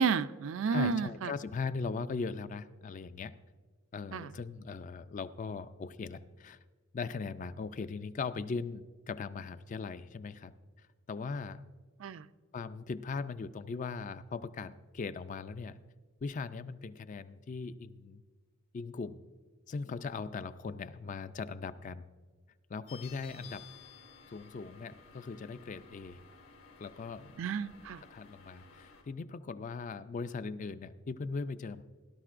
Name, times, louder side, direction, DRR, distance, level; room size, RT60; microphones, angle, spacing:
voice 1, 0.0-1.3 4.1-4.3 12.0-12.2 27.4-28.0, right 5 dB, 70° right, 13 dB, 0.4 m, -31 dB
voice 2, 0.7-3.3 3.9-6.6 6.9-10.5 11.1-11.6 12.5-15.8 16.2-18.2 18.7-19.3 19.7-22.0 22.7-23.7 24.3-26.2 26.8-27.3 28.1-31.8, left 4 dB, 40° left, 13 dB, 0.3 m, -39 dB
sound 1, 22.9-29.0, left 6 dB, 90° left, 2.6 m, -55 dB
17.5 x 11.5 x 2.5 m, 1.5 s
head